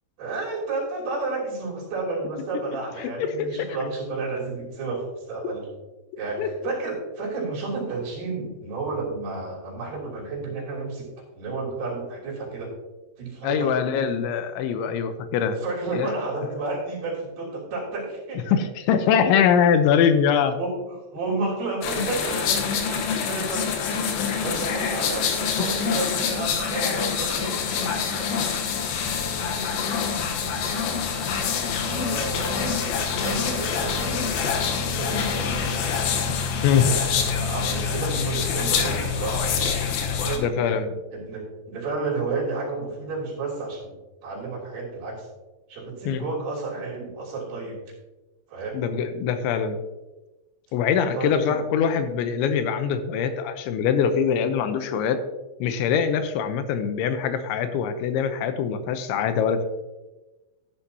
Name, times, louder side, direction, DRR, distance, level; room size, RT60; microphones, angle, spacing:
voice 1, 0.2-5.7 6.2-11.1 11.3-12.7 13.2-13.7 15.6-18.4 20.5-27.5 27.8-28.1 28.4-28.5 31.1-34.3 34.6-36.0 36.8-39.7 40.1-40.8 41.1-43.9 44.2-45.3 45.7-47.8 48.5-48.8 51.1-51.6, right 3 dB, 60° right, -3 dB, 4.9 m, -32 dB
voice 2, 3.0-3.7 6.4-6.5 13.4-15.6 15.9-16.1 18.5-20.6 25.6-25.7 36.6-36.9 40.4-41.0 46.1-46.2 48.7-49.8 50.7-55.2 55.6-59.6, left 7 dB, 85° left, 9 dB, 3.1 m, -23 dB
sound 1, 21.8-40.4, left 6 dB, 70° left, 2.4 m, -26 dB
12.5 x 10.0 x 2.8 m, 1.1 s
omnidirectional pair, 5.3 m